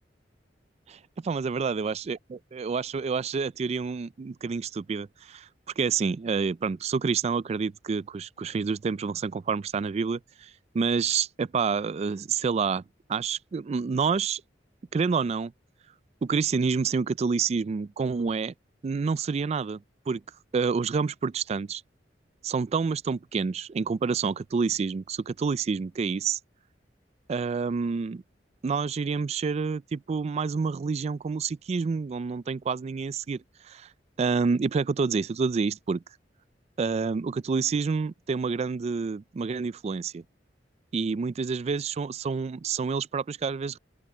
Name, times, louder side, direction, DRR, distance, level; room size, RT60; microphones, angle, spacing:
voice 1, 0.9-5.5 5.8-10.5 10.7-12.8 13.1-14.4 14.9-15.5 16.2-18.5 18.8-19.8 20.1-20.2 20.5-21.8 22.4-26.4 27.3-28.2 28.6-33.9 34.2-36.0 36.8-40.2 40.9-43.8, right 5 dB, 35° right, 0.3 m, -28 dB
open air
head